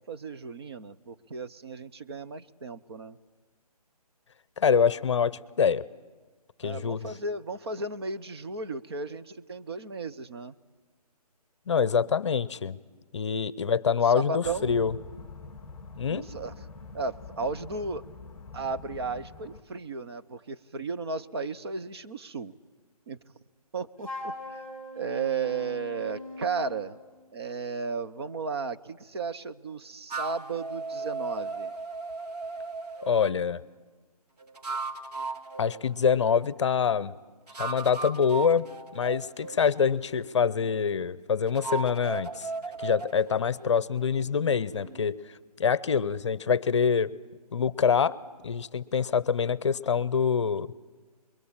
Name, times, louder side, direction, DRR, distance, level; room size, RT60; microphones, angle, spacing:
voice 1, 0.0-3.2 6.6-10.5 14.0-14.7 16.1-16.5 16.9-18.0 18.5-22.5 23.1-23.2 23.7-24.6 25.0-27.0 27.3-31.7, right 4 dB, 40° right, 10 dB, 0.9 m, -34 dB
voice 2, 4.6-5.9 6.6-7.1 11.7-12.8 13.1-14.9 16.0-16.3 33.0-33.6 35.6-37.1 37.6-38.7 38.9-42.5 42.8-45.2 45.6-47.1 47.5-48.2 48.4-50.7, left 6 dB, 45° left, 19 dB, 0.7 m, -25 dB
sound 1, 14.4-19.6, left 4 dB, 5° left, 1.6 m, -45 dB
Wind instrument woodwind instrument, 24.0-26.9, left 2 dB, 15° right, 4.8 m, -40 dB
sound 2, 30.1-33.4 34.4-36.5 37.5-40.7 41.5-45.1, right 3 dB, 90° right, 2.8 m, -37 dB
28.0 x 22.5 x 8.9 m, 1.4 s
hypercardioid pair, 165°, 20 cm